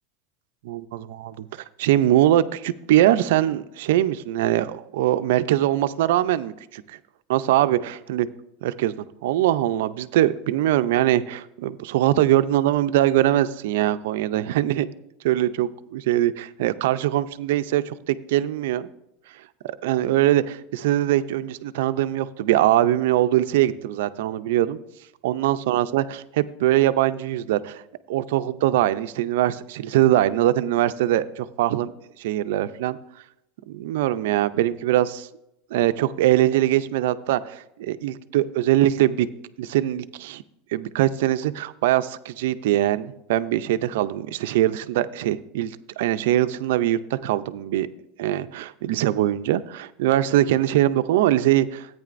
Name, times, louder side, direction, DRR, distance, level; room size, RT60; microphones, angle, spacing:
voice 1, 0.6-1.5 1.8-7.0 7.3-8.3 8.6-14.9 15.2-18.9 19.6-24.8 25.2-27.8 28.1-31.9 32.2-33.0 33.7-35.3 35.7-39.3 39.6-40.4 40.7-47.9 48.2-51.9, right 13 dB, 75° right, 13 dB, 0.4 m, -22 dB
14.0 x 9.0 x 2.5 m, 0.84 s
supercardioid pair, 155°, 0 cm